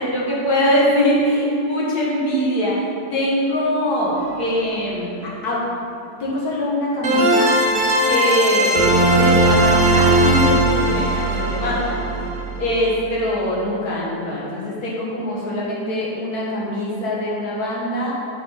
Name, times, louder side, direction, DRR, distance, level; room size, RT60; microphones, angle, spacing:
voice 1, 0.0-5.1 5.4-5.6 6.2-7.5 8.0-12.0 12.6-18.1, equal, 70° left, -5 dB, 2.0 m, -22 dB
sound 1, 4.2-4.3 7.0-12.9, right 1 dB, 45° right, 0.7 m, -18 dB
8.8 x 5.1 x 4.0 m, 2.6 s
omnidirectional pair, 1.7 m